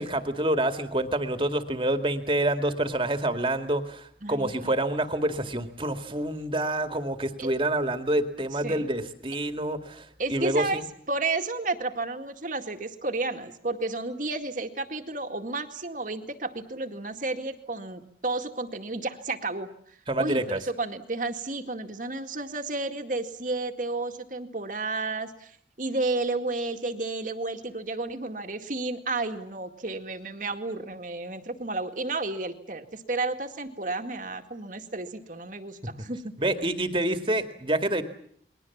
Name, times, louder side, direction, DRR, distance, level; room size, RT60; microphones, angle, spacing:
voice 1, 0.0-10.8 20.1-20.6 36.4-38.0, right 1 dB, 30° right, 7 dB, 2.2 m, -27 dB
voice 2, 4.2-4.7 7.4-7.5 8.6-8.9 10.2-10.8 11.1-19.7 20.2-36.3, right 3 dB, 45° right, 6 dB, 2.1 m, -32 dB
29.0 x 22.0 x 7.3 m, 0.64 s
head